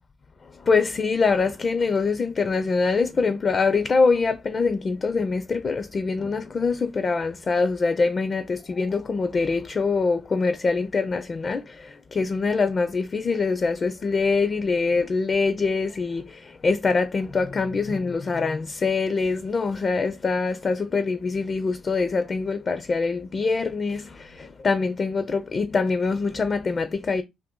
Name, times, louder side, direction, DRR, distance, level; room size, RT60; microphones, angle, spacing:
voice 1, 0.5-27.2, left 4 dB, 40° left, 0.4 m, -24 dB
2.6 x 2.5 x 3.6 m
cardioid pair, 90°, 0 cm